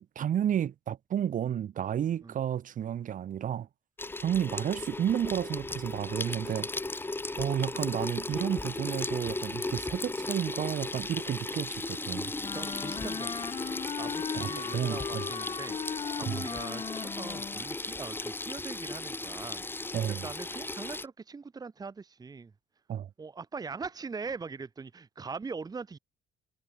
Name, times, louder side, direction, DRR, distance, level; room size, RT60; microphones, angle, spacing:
voice 1, 0.0-3.7 4.2-6.7 7.4-12.3 14.3-15.2 16.3-16.4 19.9-20.3 22.9-23.1, right 10 dB, 50° right, 2.2 m, -31 dB
Water tap faucet / Sink (filling or washing), 4.0-21.1, left 2 dB, 10° left, 1.8 m, -36 dB
voice 2, 6.3-6.6 12.5-22.5 23.2-26.0, right 4 dB, 20° right, 1.3 m, -42 dB
Wind instrument woodwind instrument, 12.4-17.7, left 7 dB, 30° left, 0.5 m, -37 dB
cardioid pair, 110°, 17 cm